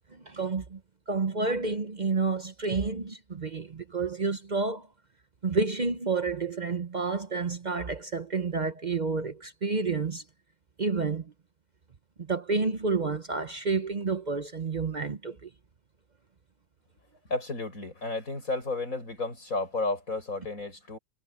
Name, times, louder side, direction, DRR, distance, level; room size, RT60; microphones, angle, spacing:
voice 1, 0.1-0.8 1.1-4.9 5.4-10.2 10.8-11.3 12.2-15.5, right 4 dB, 40° right, 0.9 m, -30 dB
voice 2, 17.3-21.0, left 3 dB, 85° left, 7.8 m, -32 dB
omnidirectional pair, 1.4 m